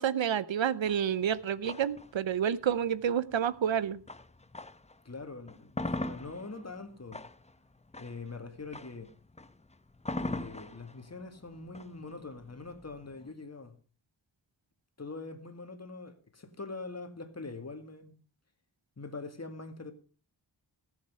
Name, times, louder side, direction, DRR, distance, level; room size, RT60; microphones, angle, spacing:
voice 1, 0.0-4.0, right 9 dB, 90° right, 0.8 m, -29 dB
sound 1, 0.8-5.0 5.4-13.3, left 2 dB, 15° left, 0.7 m, -41 dB
voice 2, 5.1-7.2 8.0-9.1 10.2-13.7 15.0-18.1 19.0-19.9, left 3 dB, 35° left, 2.1 m, -43 dB
17.5 x 7.4 x 5.6 m
wide cardioid pair, 75°, 45 cm